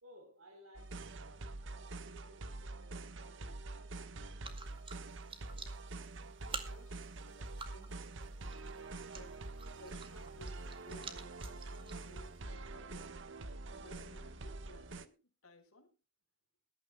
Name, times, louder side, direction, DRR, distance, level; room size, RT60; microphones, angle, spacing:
voice 1, 0.0-4.3, right 1 dB, 85° right, 3.6 m, -60 dB
sound 1, 0.8-15.1, right 2 dB, 60° right, 1.2 m, -46 dB
sound 2, 4.4-12.4, right 4 dB, 25° right, 2.1 m, -51 dB
voice 2, 6.4-9.4 9.8-13.2 13.7-16.0, left 1 dB, 90° left, 4.4 m, -59 dB
21.5 x 12.5 x 2.2 m
head